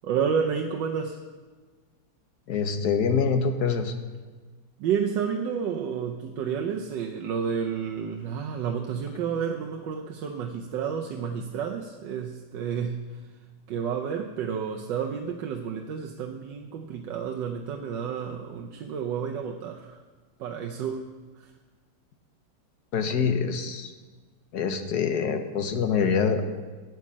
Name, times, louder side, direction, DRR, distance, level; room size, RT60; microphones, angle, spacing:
voice 1, 0.0-1.2 4.8-13.2 13.7-20.0 20.4-21.0 21.4-21.5, right 7 dB, 85° right, 2 dB, 1.4 m, -30 dB
voice 2, 2.5-3.9 22.9-23.9 24.5-26.4, left 6 dB, 65° left, 7 dB, 1.4 m, -25 dB
9.6 x 9.2 x 7.3 m, 1.4 s
omnidirectional pair, 1.9 m